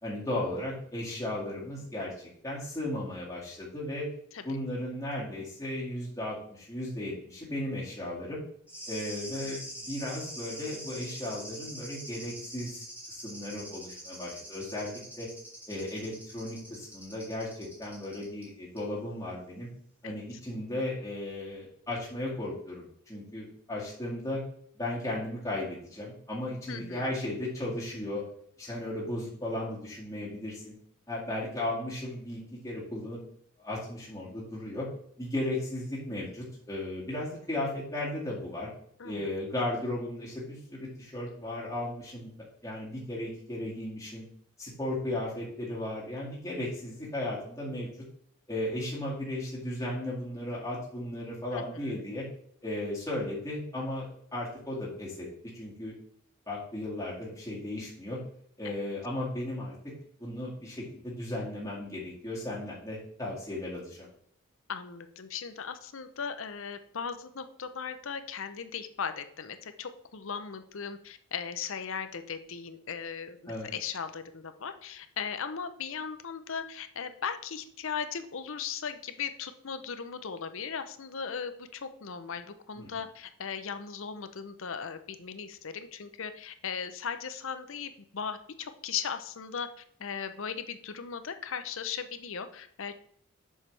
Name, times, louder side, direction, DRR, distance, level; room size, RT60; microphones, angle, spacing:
voice 1, 0.0-4.1 4.4-8.4 8.9-15.3 15.7-19.7 20.0-24.4 24.8-28.2 28.6-30.7 31.1-33.2 33.6-34.9 35.2-38.7 39.0-44.3 44.6-47.9 48.5-52.2 52.6-55.3 55.5-55.9 56.5-58.2 58.6-59.7 60.2-64.1 73.5-73.7 82.8-82.9, left 1 dB, 15° left, -7 dB, 2.0 m, -35 dB
sound 1, 8.7-18.5 18.8-18.9, equal, 5° right, 2.6 m, -44 dB
voice 2, 26.7-27.1 39.0-39.3 51.5-51.8 58.6-58.7 64.7-93.0, left 6 dB, 60° left, 10 dB, 0.6 m, -38 dB
7.4 x 6.5 x 3.3 m, 0.63 s
head